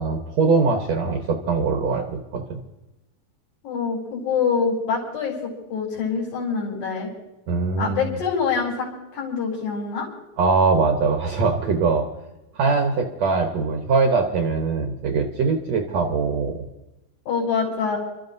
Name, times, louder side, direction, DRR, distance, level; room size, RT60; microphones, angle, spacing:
voice 1, 0.0-2.6 7.5-8.1 10.4-12.1 12.6-16.6, right 4 dB, 65° right, 3 dB, 1.7 m, -22 dB
voice 2, 3.6-7.1 7.8-10.1 17.3-18.0, left 5 dB, 60° left, -6 dB, 5.6 m, -25 dB
30.0 x 13.5 x 2.7 m, 0.96 s
omnidirectional pair, 4.4 m